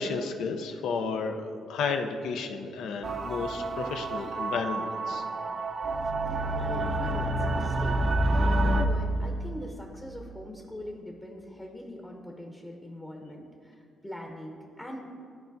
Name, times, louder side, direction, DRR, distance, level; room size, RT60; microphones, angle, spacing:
voice 1, 0.0-1.4 1.7-5.2, left 5 dB, 80° left, 5 dB, 0.5 m, -32 dB
sound 1, 3.0-8.9, right 1 dB, 45° right, 0.5 m, -28 dB
voice 2, 6.2-15.0, left 1 dB, 10° left, 0 dB, 0.8 m, -42 dB
13.0 x 4.4 x 2.6 m, 2.4 s
cardioid pair, 90°, 0 cm